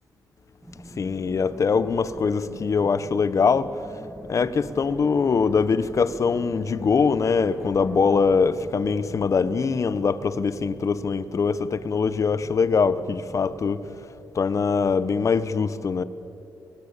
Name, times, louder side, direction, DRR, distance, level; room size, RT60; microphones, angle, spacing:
sound 1, 0.6-15.5, equal, 5° right, 2.3 m, -45 dB
voice 1, 1.0-3.7 4.3-13.9 14.3-16.0, left 5 dB, 45° left, 1.1 m, -23 dB
24.5 x 21.5 x 8.4 m
cardioid pair, 100°, 8 cm